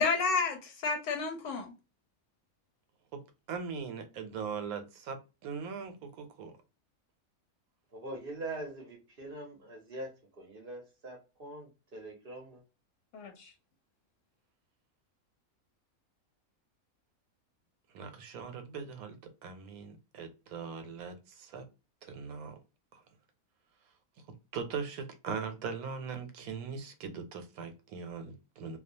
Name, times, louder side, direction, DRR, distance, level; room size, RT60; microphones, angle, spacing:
voice 1, 0.0-1.7 13.1-13.5, left 4 dB, 65° left, 0.8 m, -31 dB
voice 2, 3.5-6.6 17.9-21.6 22.0-22.6 22.9-23.0 24.5-28.8, right 5 dB, 80° right, 1.1 m, -40 dB
voice 3, 7.9-10.1 10.4-12.6, right 2 dB, 50° right, 0.7 m, -43 dB
2.3 x 2.2 x 2.6 m
omnidirectional pair, 1.5 m